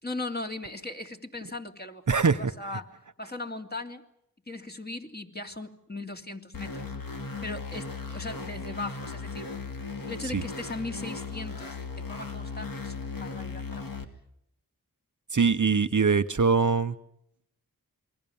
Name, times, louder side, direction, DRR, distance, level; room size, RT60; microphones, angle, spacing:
voice 1, 0.0-2.9 3.2-4.0 4.5-6.9 7.4-9.5 10.1-13.9, left 2 dB, 25° left, 3 dB, 2.9 m, -38 dB
voice 2, 2.1-2.4 10.3-10.4 15.3-16.9, right 5 dB, 55° right, 10 dB, 1.0 m, -22 dB
sound 1, 6.5-14.0, left 4 dB, 65° left, 2.7 m, -37 dB
28.5 x 22.5 x 7.2 m, 0.77 s
wide cardioid pair, 65°, 36 cm